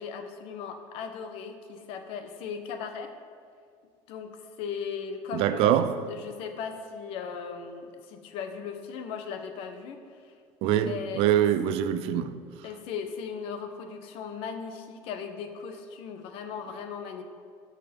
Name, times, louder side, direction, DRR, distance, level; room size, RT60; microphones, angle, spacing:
voice 1, 0.0-3.1 4.1-4.3 4.6-10.0 10.6-11.2 12.6-17.2, left 6 dB, 65° left, 1.1 m, -37 dB
voice 2, 5.3-6.0 10.6-12.4, right 11 dB, 70° right, 0.6 m, -24 dB
13.0 x 6.3 x 5.3 m
cardioid pair, 160°, 10 cm